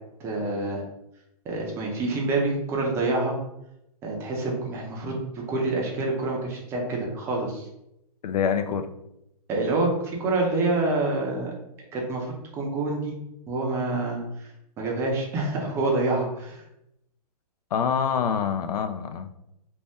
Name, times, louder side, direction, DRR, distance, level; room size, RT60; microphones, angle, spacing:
voice 1, 0.2-0.8 1.5-3.3 4.0-7.7 9.5-11.5 11.9-13.1 13.5-14.5 14.8-16.6, right 2 dB, 15° right, -1 dB, 0.5 m, -27 dB
voice 2, 8.2-8.9 17.7-19.4, left 7 dB, 70° left, 9 dB, 0.4 m, -26 dB
2.7 x 2.1 x 3.4 m, 0.83 s
hypercardioid pair, 155°, 20 cm